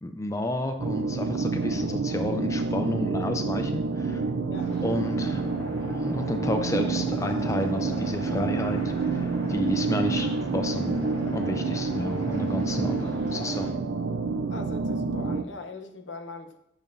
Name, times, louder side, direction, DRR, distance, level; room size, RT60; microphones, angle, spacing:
voice 1, 0.0-4.2 4.8-5.5 5.8-13.7, left 1 dB, 15° left, 6 dB, 0.4 m, -31 dB
sound 1, 0.8-15.4, right 4 dB, 75° right, 0.5 m, -28 dB
sound 2, 4.5-13.7, left 1 dB, 35° left, 2.2 m, -41 dB
voice 2, 14.5-16.6, left 3 dB, 75° left, 6 dB, 0.8 m, -40 dB
10.5 x 7.0 x 2.6 m, 0.81 s
head